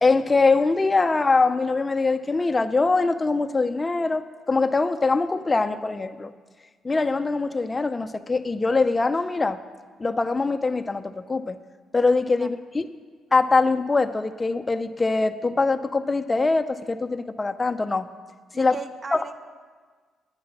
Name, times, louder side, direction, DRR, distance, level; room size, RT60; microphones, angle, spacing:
voice 1, 0.0-6.3 6.8-9.6 10.0-11.6 11.9-12.9 13.3-18.1 18.5-18.8 19.1-19.2, left 3 dB, 25° left, 8 dB, 0.5 m, -23 dB
voice 2, 18.5-19.3, right 5 dB, 35° right, 9 dB, 0.8 m, -37 dB
9.6 x 9.5 x 7.1 m, 1.5 s
cardioid pair, 90°, 0 cm